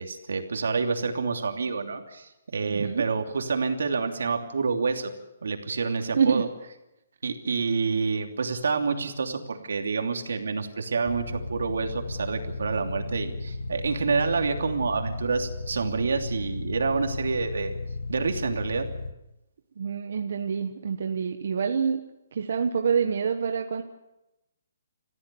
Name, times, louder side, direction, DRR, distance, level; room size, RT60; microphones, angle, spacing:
voice 1, 0.0-5.1 5.4-6.5 7.2-17.7 18.1-18.9, right 4 dB, 80° right, 4 dB, 3.0 m, -28 dB
voice 2, 2.6-3.0 6.1-6.4 19.8-22.0 22.3-23.8, right 6 dB, 50° right, 5 dB, 1.2 m, -26 dB
sound 1, 11.0-19.1, left 3 dB, 85° left, 1.8 m, -35 dB
28.0 x 15.0 x 7.0 m, 0.92 s
hypercardioid pair, 180°, 0 cm